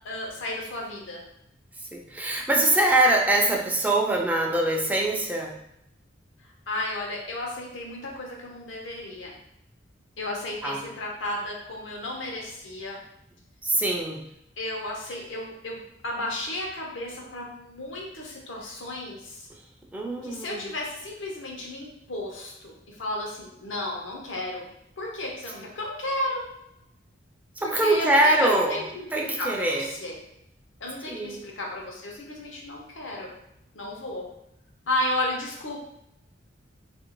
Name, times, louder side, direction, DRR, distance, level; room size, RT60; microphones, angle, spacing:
voice 1, 0.0-1.2 6.7-9.3 10.2-13.0 14.6-19.5 20.2-24.7 25.0-26.5 27.6-30.1 30.8-33.3 33.7-34.3 34.9-35.8, left 1 dB, 85° left, -1 dB, 0.8 m, -33 dB
voice 2, 1.9-5.6 10.6-10.9 13.6-14.2 19.9-20.6 25.6-25.7 27.6-28.8 29.1-29.9 31.1-31.4, right 1 dB, 10° right, 0 dB, 0.3 m, -23 dB
2.8 x 2.5 x 2.9 m, 0.80 s
head